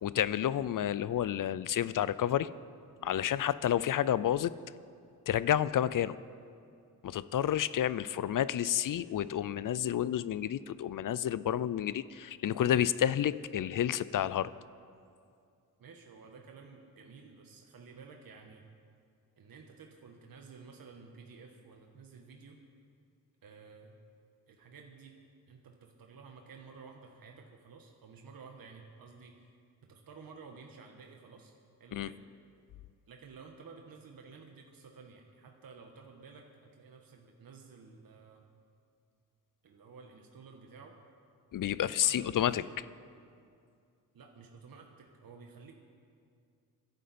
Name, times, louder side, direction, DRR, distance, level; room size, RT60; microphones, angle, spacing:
voice 1, 0.0-2.5 3.0-4.5 5.3-6.2 7.0-14.5 31.9-32.1 41.5-42.6, left 10 dB, 55° left, 17 dB, 0.5 m, -30 dB
voice 2, 8.0-8.3 15.8-18.6 19.4-22.6 23.4-23.9 24.5-25.1 25.5-29.5 29.9-31.5 31.8-32.2 33.1-38.5 39.6-40.9 42.0-42.8 44.1-45.7, right 5 dB, 60° right, 2 dB, 1.5 m, -53 dB
26.0 x 10.5 x 4.3 m, 2.4 s
cardioid pair, 70°, 38 cm